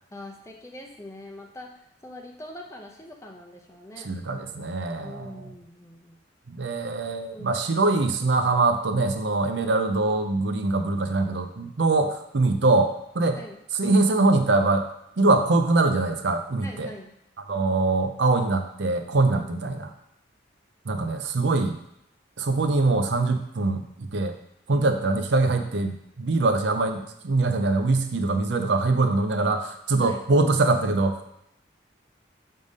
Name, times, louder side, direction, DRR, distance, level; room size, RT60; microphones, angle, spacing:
voice 1, 0.1-4.1 5.0-6.2 7.3-7.6 13.4-13.6 16.6-17.1 19.3-19.5 24.8-25.0 30.0-30.3, left 1 dB, 15° left, 1 dB, 0.7 m, -43 dB
voice 2, 4.0-5.4 6.5-13.4 13.7-14.9 15.2-16.9 17.5-19.9 20.9-21.8 22.4-24.3 24.7-31.3, right 3 dB, 65° right, 6 dB, 0.6 m, -23 dB
6.7 x 3.6 x 5.3 m, 0.79 s
head